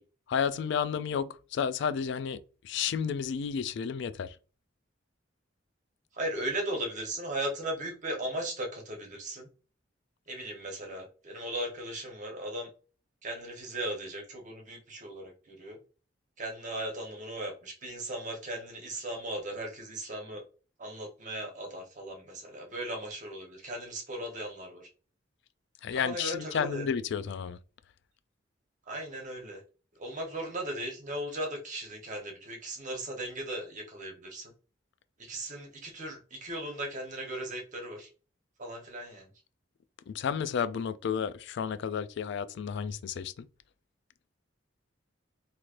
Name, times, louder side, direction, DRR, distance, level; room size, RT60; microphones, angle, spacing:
voice 1, 0.3-2.4 2.6-4.4 25.8-27.6 40.1-43.5, left 7 dB, 65° left, 0.3 m, -32 dB
voice 2, 6.1-9.5 10.3-12.7 13.2-15.8 16.4-20.4 20.8-24.9 25.9-26.9 28.9-29.6 30.0-34.5 35.2-38.1 38.6-39.3, right 1 dB, 40° right, 1.0 m, -37 dB
3.1 x 2.9 x 2.5 m
head